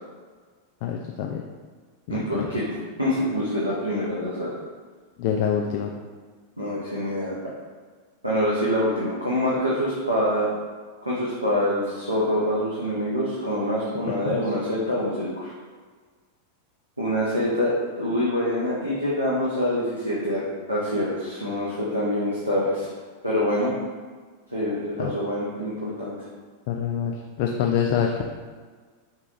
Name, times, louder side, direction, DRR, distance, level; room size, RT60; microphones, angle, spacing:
voice 1, 0.8-1.4 2.1-2.5 5.2-5.9 14.3-14.5 25.0-25.1 26.7-28.2, left 8 dB, 45° left, 1 dB, 0.3 m, -26 dB
voice 2, 2.1-4.5 6.6-7.3 8.2-10.5 11.0-15.5 17.0-20.4 20.7-22.9 23.2-23.7 24.5-26.1, equal, 85° right, -8 dB, 0.9 m, -25 dB
4.7 x 3.4 x 2.9 m, 1.5 s
figure-of-eight pair, 90°, 0 cm